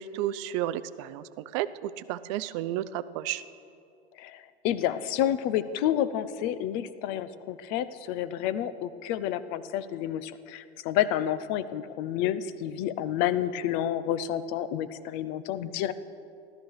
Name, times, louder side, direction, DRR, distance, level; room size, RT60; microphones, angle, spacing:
voice 1, 0.0-3.4, right 12 dB, 30° right, 15 dB, 0.4 m, -32 dB
voice 2, 4.2-15.9, left 11 dB, 30° left, 14 dB, 0.6 m, -29 dB
16.0 x 12.5 x 6.5 m, 2.5 s
hypercardioid pair, 150°, 32 cm